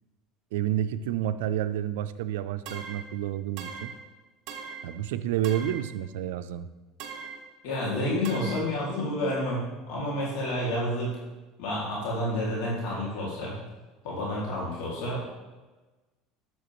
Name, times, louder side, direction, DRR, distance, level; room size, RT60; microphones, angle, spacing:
voice 1, 0.5-3.9 4.8-6.7, right 11 dB, 90° right, 11 dB, 0.4 m, -29 dB
sound 1, 2.7-3.1 3.6-4.0 4.5-4.9 5.4-5.9 7.0-7.4 8.2-8.7, right 6 dB, 60° right, 1.2 m, -40 dB
voice 2, 7.6-9.6 9.9-11.1 11.6-13.6 14.0-15.3, left 1 dB, 75° left, -4 dB, 2.4 m, -29 dB
11.0 x 7.2 x 3.1 m, 1.2 s
supercardioid pair, 115°, 0 cm